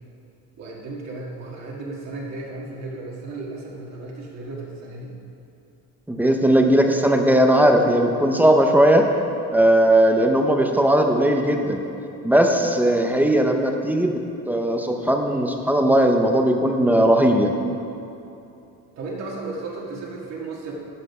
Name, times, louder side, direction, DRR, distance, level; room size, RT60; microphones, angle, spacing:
voice 1, 0.6-5.1 19.0-20.7, right 3 dB, 45° right, -4 dB, 1.8 m, -34 dB
voice 2, 6.1-9.1 9.5-11.8 12.2-17.5, right 1 dB, 5° right, 3 dB, 0.7 m, -18 dB
12.0 x 9.0 x 5.5 m, 2.8 s
cardioid pair, 155°, 36 cm